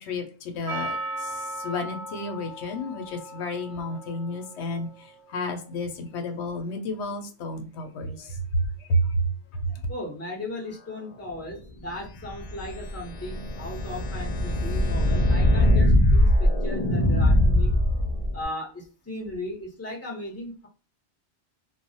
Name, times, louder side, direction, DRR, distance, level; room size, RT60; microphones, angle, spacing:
voice 1, 0.0-4.9 5.3-8.4 8.9-9.2 9.6-9.8, left 1 dB, 80° left, 5 dB, 0.9 m, -31 dB
Percussion, 0.7-5.2, right 1 dB, 85° right, 0.9 m, -37 dB
voice 2, 9.9-17.7 18.3-20.7, left 1 dB, 15° left, -1 dB, 0.7 m, -37 dB
sound 1, 12.1-18.4, left 1 dB, 55° left, 0.5 m, -22 dB
2.3 x 2.1 x 2.6 m, 0.37 s
omnidirectional pair, 1.1 m